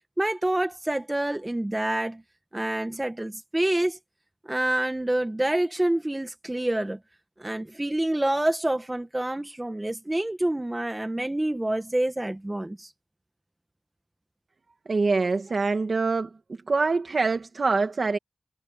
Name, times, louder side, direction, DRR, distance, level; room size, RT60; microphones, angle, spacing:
voice 1, 0.2-2.2 2.5-4.0 4.4-7.0 7.4-12.9, right 1 dB, 25° right, 1.6 m, -27 dB
voice 2, 14.9-16.3 16.7-18.2, right 4 dB, 80° right, 1.7 m, -24 dB
wide cardioid pair, 65°, 0 cm